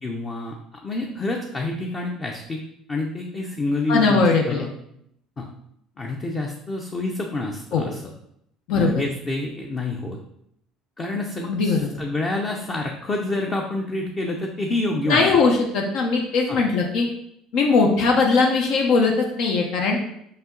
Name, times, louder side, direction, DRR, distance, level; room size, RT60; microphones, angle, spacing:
voice 1, 0.0-0.6 0.8-2.6 2.9-4.7 5.4-5.5 6.0-8.1 8.7-10.2 11.0-15.4 16.5-16.6, left 2 dB, 20° left, 1 dB, 0.7 m, -28 dB
voice 2, 3.9-4.7 7.7-7.8 8.7-9.0 11.5-11.9 15.1-17.1 17.5-20.0, left 4 dB, 65° left, 1 dB, 1.0 m, -20 dB
5.7 x 5.6 x 3.8 m, 0.74 s
cardioid pair, 155°, 0 cm